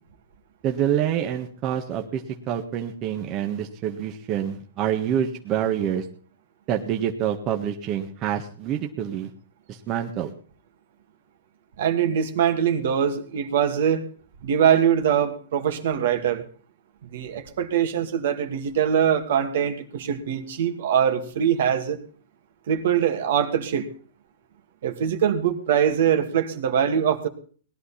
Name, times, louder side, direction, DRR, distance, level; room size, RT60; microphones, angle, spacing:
voice 1, 0.6-6.0 6.7-9.3 9.7-10.3, right 10 dB, 35° right, 3 dB, 1.6 m, -27 dB
voice 2, 11.8-14.1 14.4-16.4 17.0-22.0 22.7-23.9 24.8-27.3, right 8 dB, 65° right, 6 dB, 2.3 m, -23 dB
19.0 x 11.5 x 4.3 m, 0.43 s
hypercardioid pair, 130°, 0 cm